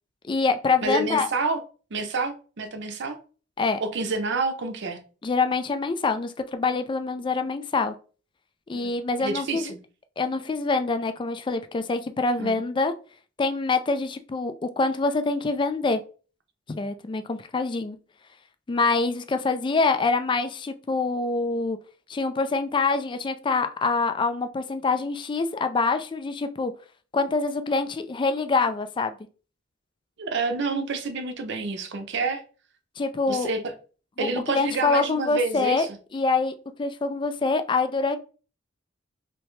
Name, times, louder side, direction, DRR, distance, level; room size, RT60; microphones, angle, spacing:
voice 1, 0.2-1.3 3.6-3.8 5.2-7.9 8.7-9.7 10.2-12.9 13.4-16.0 16.7-18.0 18.7-21.8 22.1-26.7 27.1-29.2 33.0-33.5 34.2-35.9 36.1-38.2, left 3 dB, 25° left, 0.3 m, -25 dB
voice 2, 0.8-1.6 1.9-3.2 3.8-5.0 8.7-8.9 9.2-9.8 12.4-12.6 30.2-32.4 33.3-33.7 34.2-36.0, right 3 dB, 60° right, 0.6 m, -28 dB
3.2 x 2.8 x 3.1 m
head